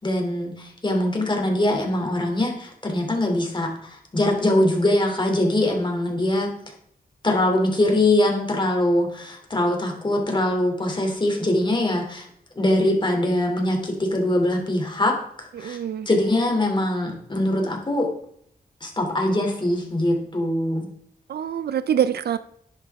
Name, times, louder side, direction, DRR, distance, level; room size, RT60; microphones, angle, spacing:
voice 1, 0.0-6.5 7.2-12.3 12.5-15.8 16.0-18.1 18.8-20.9, left 1 dB, 30° left, 2 dB, 3.1 m, -22 dB
voice 2, 15.5-16.1 21.3-22.4, right 9 dB, 90° right, 14 dB, 0.7 m, -25 dB
11.0 x 10.5 x 3.7 m, 0.67 s
wide cardioid pair, 85°, 16 cm